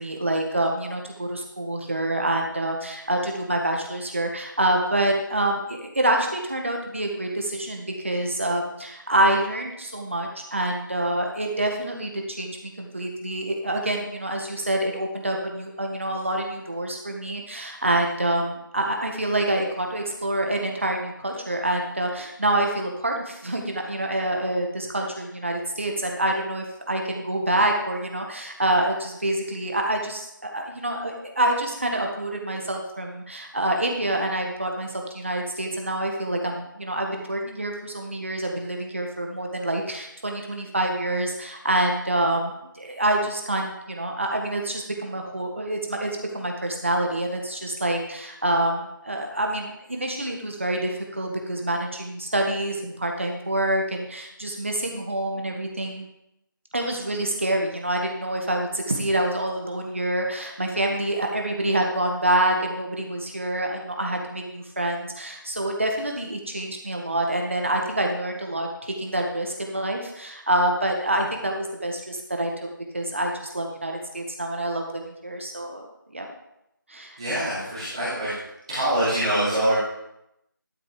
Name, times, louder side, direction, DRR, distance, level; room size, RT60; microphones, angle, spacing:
voice 1, 0.0-56.1 56.7-72.7 72.9-75.8 76.1-76.3 76.9-77.4, right 1 dB, 35° right, 2 dB, 1.6 m, -27 dB
voice 2, 77.2-78.4 78.7-79.7, right 1 dB, 15° right, -12 dB, 3.1 m, -24 dB
12.0 x 6.2 x 5.1 m, 0.83 s
figure-of-eight pair, 175°, 11 cm